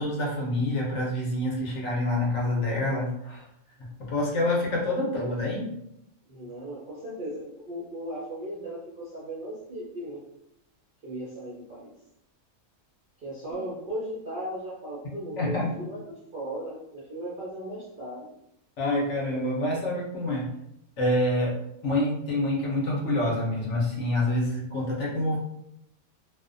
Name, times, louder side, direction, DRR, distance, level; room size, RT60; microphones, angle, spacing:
voice 1, 0.0-3.5 3.8-5.7 15.4-15.8 18.8-20.5 21.0-25.4, left 1 dB, 60° left, -3 dB, 0.9 m, -27 dB
voice 2, 6.3-10.2 11.0-11.9 13.2-18.3, right 1 dB, 55° right, -7 dB, 0.6 m, -37 dB
2.6 x 2.1 x 2.5 m, 0.80 s
omnidirectional pair, 1.5 m